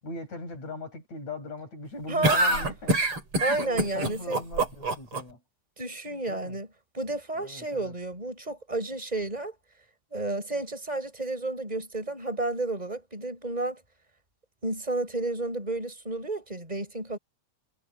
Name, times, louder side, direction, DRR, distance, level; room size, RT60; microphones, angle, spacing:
voice 1, 0.0-3.0 3.5-5.4 6.3-6.5 7.4-7.9, left 2 dB, 65° left, 9.4 m, -40 dB
voice 2, 2.1-2.5 3.4-4.4 5.8-6.7 6.9-9.5 10.1-13.8 14.6-17.2, right 2 dB, 10° right, 8.2 m, -31 dB
sound 1, 2.2-5.2, right 2 dB, 45° right, 6.1 m, -25 dB
omnidirectional pair, 3.5 m